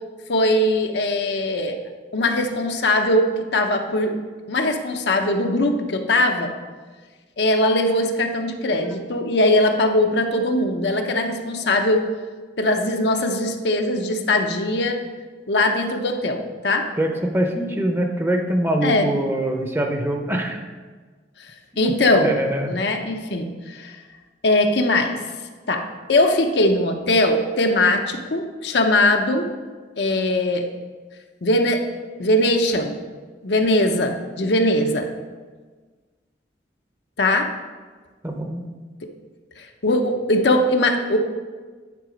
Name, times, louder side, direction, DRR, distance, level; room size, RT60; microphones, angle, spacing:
voice 1, 0.3-1.8 2.1-4.2 4.5-6.5 7.4-12.0 12.6-15.0 15.5-16.9 18.8-19.1 21.4-21.5 21.8-22.4 22.7-24.0 24.4-25.2 25.7-25.8 26.1-29.5 30.0-30.7 31.4-31.9 32.2-33.0 33.4-35.1 37.2-37.5 39.6-41.2, left 1 dB, 70° left, 4 dB, 0.7 m, -20 dB
voice 2, 17.0-20.6 21.8-21.9 22.2-22.8 38.2-38.6, right 1 dB, 15° right, 3 dB, 0.7 m, -23 dB
9.3 x 4.0 x 5.1 m, 1.4 s
head